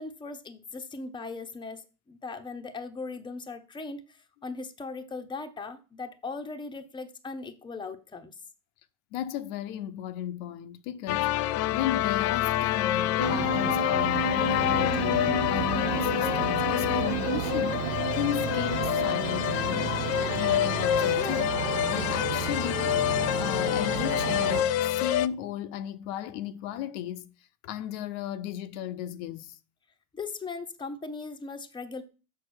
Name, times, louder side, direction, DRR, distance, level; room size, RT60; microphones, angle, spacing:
voice 1, 0.0-8.4 21.2-21.4 30.1-32.0, left 4 dB, 10° left, 0.9 m, -39 dB
voice 2, 9.1-11.4 11.7-21.5 21.9-23.0 23.4-27.3 27.6-29.6, left 11 dB, 60° left, 0.8 m, -35 dB
sound 1, 11.1-25.3, left 12 dB, 40° left, 0.4 m, -27 dB
sound 2, 13.2-24.6, right 17 dB, 65° right, 0.6 m, -33 dB
6.7 x 5.5 x 6.3 m
supercardioid pair, 115°, 43 cm